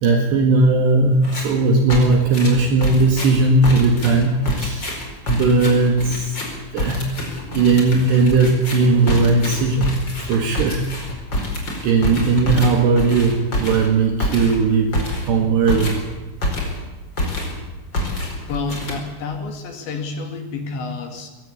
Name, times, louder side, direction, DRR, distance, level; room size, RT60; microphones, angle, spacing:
voice 1, 0.0-5.0 5.3-6.4 6.7-7.0 7.5-9.9 10.3-10.8 11.8-15.0 15.3-15.9, right 3 dB, 65° right, 3 dB, 3.7 m, -17 dB
sound 1, 1.2-1.6 1.9-16.9 17.2-17.6 17.9-19.4, left 1 dB, 25° left, 4.7 m, -26 dB
voice 2, 18.5-21.3, left 4 dB, 65° left, 5 dB, 4.3 m, -29 dB
21.5 x 16.5 x 8.5 m, 1.2 s
omnidirectional pair, 5.8 m